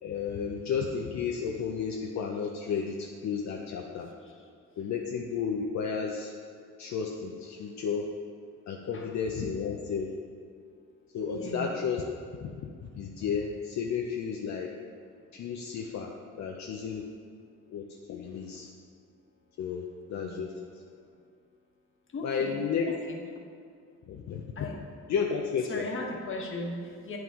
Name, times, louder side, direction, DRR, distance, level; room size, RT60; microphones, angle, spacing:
voice 1, 0.0-4.1 4.8-6.3 6.8-8.1 8.7-10.1 11.1-12.0 12.4-12.5 12.9-14.7 15.3-16.1 16.4-17.0 17.7-18.7 19.6-19.8 20.1-20.5 22.2-22.9 24.1-24.4 25.1-25.9, left 6 dB, 65° left, 0 dB, 0.7 m, -32 dB
voice 2, 11.3-11.7 20.1-20.5 22.1-22.6 22.9-23.2 24.5-24.8 25.6-27.2, left 2 dB, 40° left, 0 dB, 1.4 m, -38 dB
8.8 x 6.1 x 3.7 m, 2.2 s
cardioid pair, 90°, 30 cm